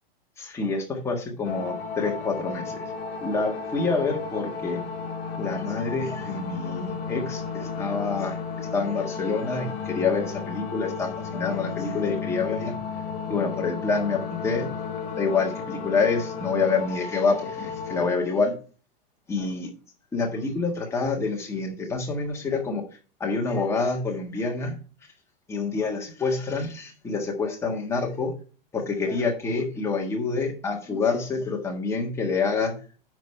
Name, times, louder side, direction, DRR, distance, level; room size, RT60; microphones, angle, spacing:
voice 1, 0.4-2.9 3.2-4.8 5.4-12.7 13.3-14.7 15.1-18.5 19.3-19.7 20.1-22.8 23.2-24.7 25.5-28.3 28.7-32.7, left 4 dB, 10° left, 0 dB, 1.6 m, -27 dB
sound 1, 1.4-18.1, left 5 dB, 40° left, 4.0 m, -33 dB
10.5 x 4.1 x 5.6 m, 0.38 s
supercardioid pair, 160°, 30 cm